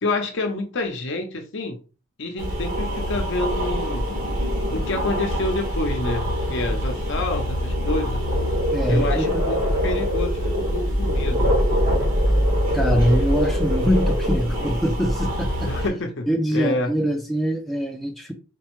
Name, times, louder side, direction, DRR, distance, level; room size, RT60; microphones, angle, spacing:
voice 1, 0.0-1.8 2.2-4.0 4.7-8.2 8.9-11.4 15.7-16.9, left 2 dB, 60° left, 0.7 m, -28 dB
sound 1, 2.4-15.9, equal, 75° right, 1.2 m, -23 dB
voice 2, 8.7-9.5 12.7-15.7 16.3-18.3, equal, ahead, 0.4 m, -23 dB
4.5 x 2.1 x 3.0 m
head